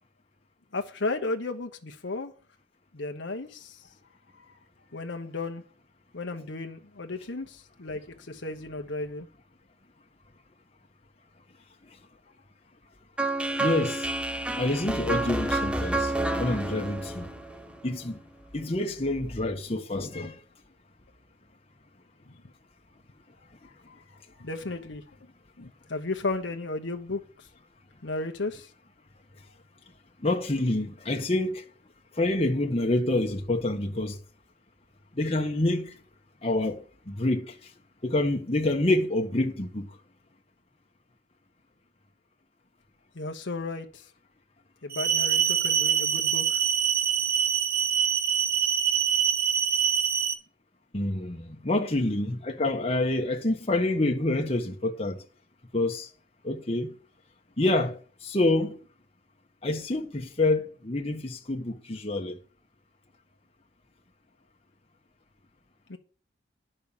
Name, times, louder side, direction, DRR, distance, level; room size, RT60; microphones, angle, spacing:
voice 1, 0.7-2.3 2.9-3.9 4.4-4.6 4.9-5.6 6.1-9.3 22.3-22.4 23.9-24.0 24.3-25.0 25.6-27.5 28.0-28.7 43.1-44.1 44.8-46.6 65.9-66.0, left 3 dB, 70° left, 1.0 m, -34 dB
sound 1, 13.2-18.2, right 2 dB, 5° right, 0.6 m, -29 dB
voice 2, 13.6-14.1 14.6-16.1 16.4-17.3 17.8-18.2 18.5-20.4 30.2-31.6 32.1-34.2 35.1-36.0 36.4-37.7 38.0-39.9 50.9-55.2 55.7-56.1 56.4-56.9 57.6-58.8 59.6-62.4, left 2 dB, 30° left, 1.2 m, -27 dB
sound 2, 44.9-50.3, right 8 dB, 50° right, 1.1 m, -25 dB
10.5 x 5.5 x 7.2 m
head